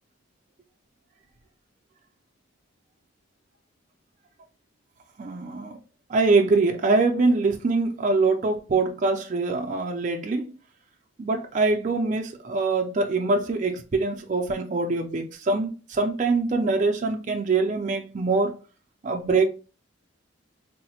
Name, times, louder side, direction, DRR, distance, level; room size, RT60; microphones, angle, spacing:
voice 1, 5.2-5.8 6.1-10.5 11.2-18.5 19.0-19.5, right 3 dB, 35° right, 0.4 m, -24 dB
3.9 x 2.0 x 2.8 m
head